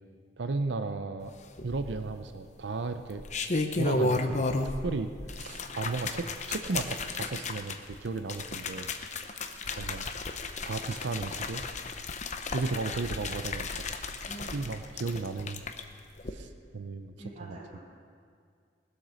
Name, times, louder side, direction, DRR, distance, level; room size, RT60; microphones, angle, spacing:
voice 1, 0.4-1.3 1.6-3.2 3.8-8.9 9.8-10.1 10.6-11.6 12.5-13.9 14.5-15.6 16.3-17.1 17.4-17.8, right 3 dB, 65° right, 9 dB, 0.6 m, -35 dB
sound 1, 1.6-2.2 3.0-4.9 5.2-15.8 16.2-16.3, left 3 dB, 40° left, 0.8 m, -33 dB
voice 2, 14.2-14.6 16.3-16.4 17.2-17.8, right 2 dB, 40° right, -8 dB, 3.4 m, -45 dB
20.0 x 8.1 x 6.3 m, 2.2 s
head